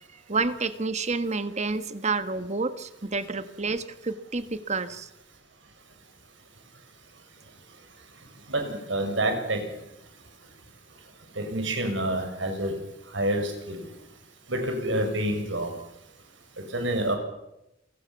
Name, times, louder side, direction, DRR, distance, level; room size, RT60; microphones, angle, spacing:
voice 1, 0.3-5.1, right 3 dB, 40° right, 12 dB, 1.5 m, -29 dB
voice 2, 8.5-9.6 11.4-12.7 13.1-13.8 14.5-15.7 16.7-17.2, right 1 dB, 85° right, 5 dB, 6.2 m, -27 dB
28.0 x 17.5 x 7.1 m, 0.87 s
head